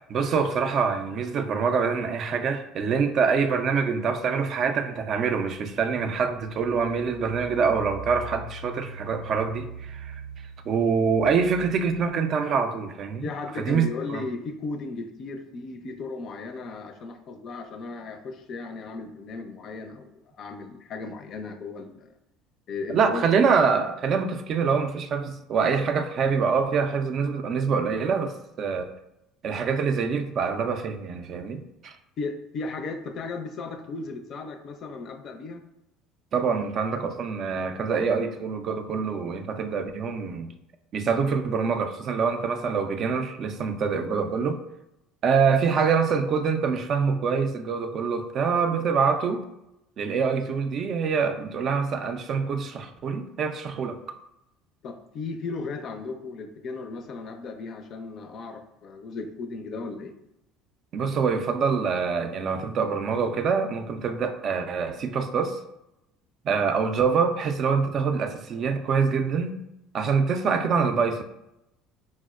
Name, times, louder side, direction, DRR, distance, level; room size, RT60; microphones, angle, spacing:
voice 1, 0.0-10.2 10.7-13.3 13.6-14.2 22.9-28.9 29.4-31.9 36.3-40.5 40.9-44.6 45.2-49.4 50.0-54.0 60.9-65.6 66.4-69.6 69.9-71.2, right 5 dB, 50° right, 7 dB, 0.3 m, -25 dB
Engine, 6.1-12.0, right 3 dB, 90° right, 0.7 m, -42 dB
voice 2, 13.2-22.1 22.7-23.3 32.2-35.6 54.8-60.1, left 3 dB, 50° left, 6 dB, 0.4 m, -36 dB
4.3 x 2.0 x 2.3 m, 0.88 s
hypercardioid pair, 75°, 0 cm